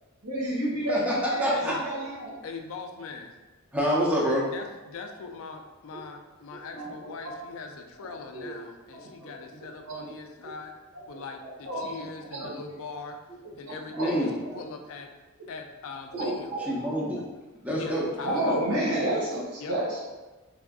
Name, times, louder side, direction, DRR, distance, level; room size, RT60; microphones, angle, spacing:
voice 1, 0.2-2.3 6.7-7.3 8.0-8.5 9.2-10.1 11.6-12.0 12.3-12.6 13.6-14.2 14.5-14.6 16.1-16.9 17.8-18.0 18.2-20.0, right 1 dB, 90° right, -6 dB, 1.1 m, -31 dB
voice 2, 1.4-1.7 3.7-4.4 14.0-14.3 16.6-17.2 17.6-18.1, equal, 5° right, -5 dB, 0.5 m, -26 dB
voice 3, 2.4-3.4 4.5-10.7 11.1-13.2 13.6-14.3 14.6-15.1 15.5-16.5 17.7-18.7 19.6-19.7, left 4 dB, 60° left, 4 dB, 0.3 m, -41 dB
3.4 x 2.4 x 2.3 m, 1.2 s
head